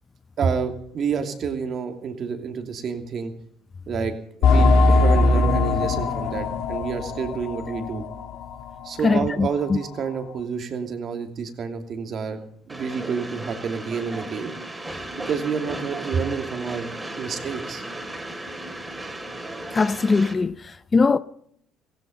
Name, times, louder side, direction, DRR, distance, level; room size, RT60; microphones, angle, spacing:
voice 1, 0.4-3.3 3.9-4.1 4.4-8.0 8.8-12.4 12.7-14.5 15.3-16.9 17.2-17.8, right 6 dB, 50° right, 2.8 m, -28 dB
sound 1, 4.4-8.7 9.0-9.1 9.7-9.8, left 2 dB, 75° left, 3.0 m, -20 dB
voice 2, 9.0-9.8 19.7-21.2, left 4 dB, 25° left, 0.6 m, -21 dB
Train, 12.7-20.3, right 1 dB, 15° right, 3.2 m, -35 dB
16.5 x 16.0 x 5.4 m
cardioid pair, 105°, 0 cm